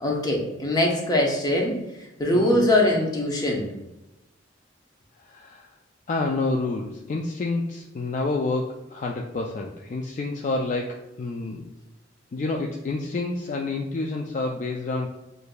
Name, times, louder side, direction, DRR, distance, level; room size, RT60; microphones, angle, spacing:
voice 1, 0.0-1.8 2.2-3.7, left 1 dB, 20° left, -1 dB, 0.7 m, -22 dB
voice 2, 5.2-5.7 6.1-11.7 12.3-15.1, left 3 dB, 40° left, 1 dB, 0.3 m, -28 dB
6.4 x 2.6 x 2.2 m, 0.96 s
head